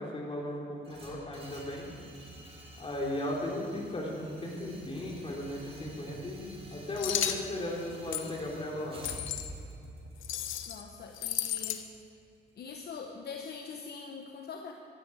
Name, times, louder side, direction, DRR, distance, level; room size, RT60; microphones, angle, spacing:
voice 1, 0.0-1.9 2.8-9.0, left 1 dB, 25° left, -3 dB, 4.0 m, -36 dB
sound 1, 0.8-12.9, right 1 dB, 30° right, 3.0 m, -50 dB
sound 2, 7.0-7.4 8.1-8.3 9.0-9.5 10.2-10.8 11.1-11.8, left 10 dB, 80° left, 0.9 m, -33 dB
voice 2, 10.7-12.1 12.6-14.7, left 5 dB, 55° left, 3 dB, 1.0 m, -43 dB
15.0 x 13.0 x 4.9 m, 2.6 s
cardioid pair, 90°, 20 cm